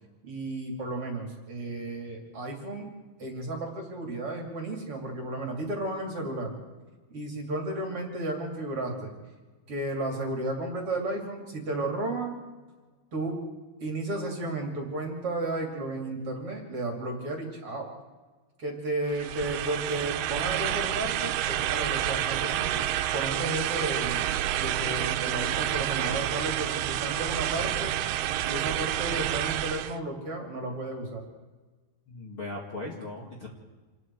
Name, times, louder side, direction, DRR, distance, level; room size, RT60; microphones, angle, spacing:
voice 1, 0.2-2.9 3.2-6.5 7.1-9.1 9.7-12.4 13.1-13.4 13.8-17.9 18.6-22.7 23.1-24.3 24.5-27.9 28.4-31.2, right 2 dB, 40° right, 1 dB, 3.3 m, -33 dB
sound 1, 19.1-30.0, right 12 dB, 80° right, 2.7 m, -29 dB
voice 2, 32.1-33.5, left 2 dB, 40° left, -1 dB, 2.4 m, -38 dB
28.0 x 20.0 x 4.7 m, 1.3 s
omnidirectional pair, 4.7 m